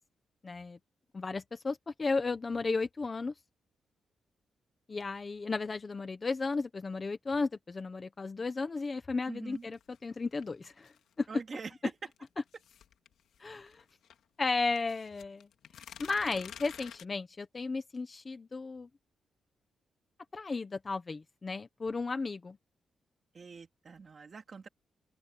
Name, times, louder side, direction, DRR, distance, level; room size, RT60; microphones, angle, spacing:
voice 1, 0.4-0.8 1.1-3.3 4.9-11.3 13.4-13.8 14.4-15.5 16.0-18.9 20.3-22.6, left 4 dB, 25° left, 1.2 m, -34 dB
voice 2, 9.3-9.7 11.3-11.7 23.3-24.7, right 5 dB, 35° right, 3.5 m, -45 dB
sound 1, 9.6-11.1 12.1-14.2 14.7-17.0, left 9 dB, 85° left, 2.4 m, -51 dB
open air
wide cardioid pair, 165°, 0 cm